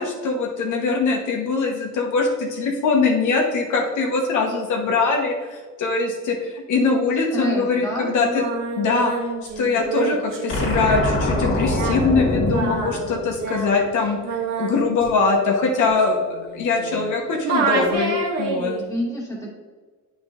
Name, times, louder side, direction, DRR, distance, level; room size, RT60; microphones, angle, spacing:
voice 1, 0.0-8.4 8.8-9.1 9.6-14.2 14.6-18.7, left 4 dB, 65° left, 0 dB, 1.3 m, -22 dB
voice 2, 7.3-8.1 18.7-19.5, equal, 10° left, -4 dB, 1.7 m, -28 dB
Singing, 8.1-17.1 17.4-18.8, right 4 dB, 55° right, 1.8 m, -28 dB
sound 1, 10.5-13.8, left 1 dB, 40° left, 2.0 m, -24 dB
8.6 x 5.6 x 2.6 m, 1.4 s
cardioid pair, 145°, 32 cm